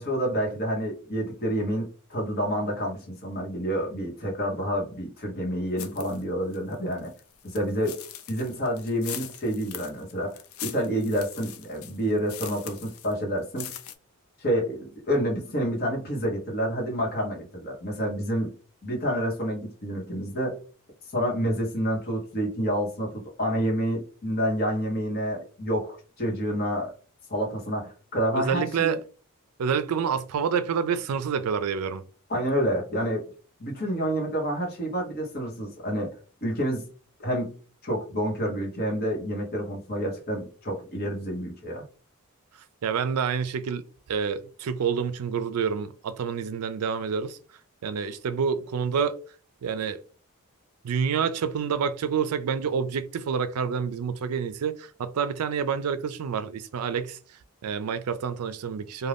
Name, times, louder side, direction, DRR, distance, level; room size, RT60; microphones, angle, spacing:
voice 1, 0.0-7.1 7.4-8.0 8.3-13.7 14.4-18.5 18.8-20.6 21.1-26.9 27.3-29.0 32.3-33.3 33.6-36.1 36.4-36.9 37.2-37.6 37.8-41.8, equal, 45° left, 1.0 m, -28 dB
sound 1, 5.8-6.2 6.5-13.1 13.4-13.9, left 11 dB, 65° left, 0.4 m, -41 dB
voice 2, 28.3-29.0 29.6-32.0 42.8-47.4 47.8-49.2 49.6-50.0 50.8-57.2 57.6-59.1, right 6 dB, 80° right, 0.4 m, -28 dB
2.5 x 2.2 x 3.3 m
head